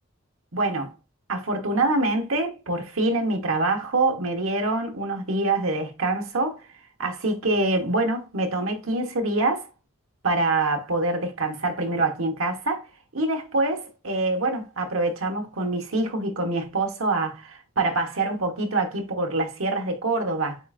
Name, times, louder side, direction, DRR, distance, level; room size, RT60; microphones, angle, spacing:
voice 1, 0.5-0.9 1.3-6.7 7.0-9.7 10.2-12.9 13.1-20.6, right 2 dB, 90° right, 1.1 m, -25 dB
7.7 x 2.6 x 2.4 m
head